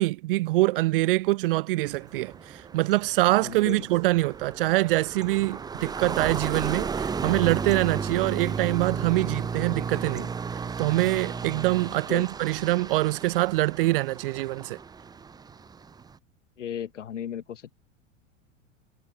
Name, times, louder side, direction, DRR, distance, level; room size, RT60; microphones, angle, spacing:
voice 1, 0.0-10.3 10.8-14.8, right 19 dB, 50° right, 0.4 m, -24 dB
sound 1, 1.9-16.2, right 5 dB, 10° right, 0.7 m, -34 dB
sound 2, 2.0-7.4 8.0-14.0, right 12 dB, 65° right, 4.9 m, -55 dB
voice 2, 3.4-3.9 11.9-12.3 16.6-17.7, left 9 dB, 70° left, 2.3 m, -36 dB
figure-of-eight pair, 85°, 37 cm